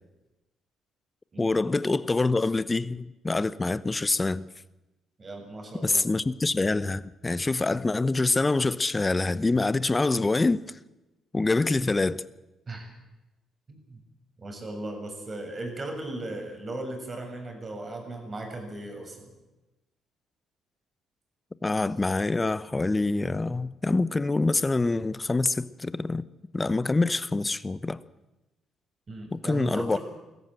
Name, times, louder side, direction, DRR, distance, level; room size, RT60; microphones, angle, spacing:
voice 1, 1.4-4.5 5.8-10.6 11.3-12.2 21.6-26.2 26.5-28.0 29.3-30.0, left 3 dB, 20° left, 0.9 m, -25 dB
voice 2, 5.2-6.0 12.7-12.9 13.7-14.0 14.4-19.3 29.1-30.0, right 2 dB, 35° right, 6.8 m, -37 dB
21.0 x 14.5 x 9.1 m
cardioid pair, 80°, 0 cm